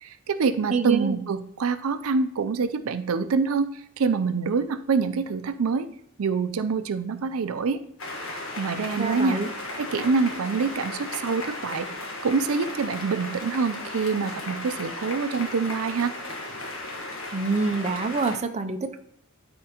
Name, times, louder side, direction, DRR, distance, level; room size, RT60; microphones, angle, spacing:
voice 1, 0.0-5.9 6.2-7.8 8.3-9.4 9.8-11.9 12.2-16.1, right 5 dB, 85° right, 10 dB, 0.5 m, -26 dB
voice 2, 0.7-1.2 9.0-9.5 17.3-19.0, right 4 dB, 30° right, 7 dB, 0.5 m, -26 dB
sound 1, 8.0-18.4, left 2 dB, 75° left, 1.4 m, -35 dB
12.5 x 4.3 x 2.9 m, 0.67 s
head